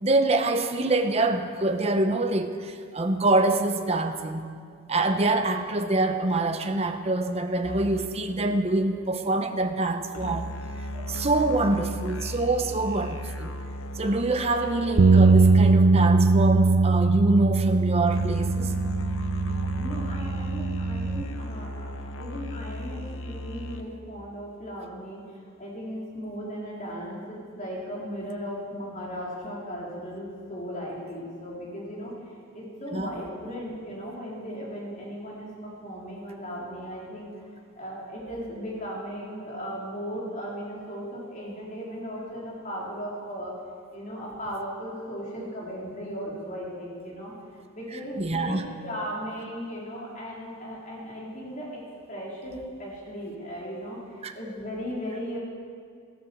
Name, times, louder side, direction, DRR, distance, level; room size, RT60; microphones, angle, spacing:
voice 1, 0.0-4.4 4.9-10.5 10.9-13.5 13.9-18.7 32.9-33.1 48.2-48.6 54.2-54.3, right 2 dB, 30° right, 6 dB, 0.9 m, -25 dB
sound 1, 7.6-16.1 18.1-23.9, left 1 dB, 80° left, 1.1 m, -36 dB
sound 2, 15.0-21.2, right 4 dB, 55° right, 0.4 m, -21 dB
voice 2, 19.8-21.9 22.2-32.1 32.5-37.5 37.7-43.5 43.9-47.3 47.7-51.7 52.1-55.4, equal, 40° left, -5 dB, 4.3 m, -37 dB
14.5 x 11.5 x 7.2 m, 2.1 s
head